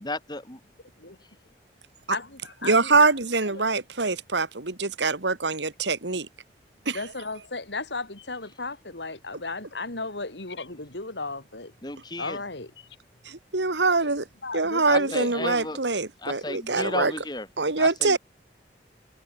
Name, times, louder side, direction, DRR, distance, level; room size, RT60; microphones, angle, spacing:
voice 1, 0.0-0.6 11.8-12.4 14.9-15.8 16.2-17.5 17.8-18.2, left 2 dB, 25° left, 2.8 m, -33 dB
voice 2, 2.1-3.1 3.5-3.7 6.9-11.7 12.2-13.0 14.4-15.6 16.8-17.0, left 3 dB, 80° left, 3.6 m, -35 dB
voice 3, 2.6-6.3 6.9-7.0 13.2-14.3 14.5-17.1 17.6-18.2, right 3 dB, 90° right, 2.3 m, -24 dB
head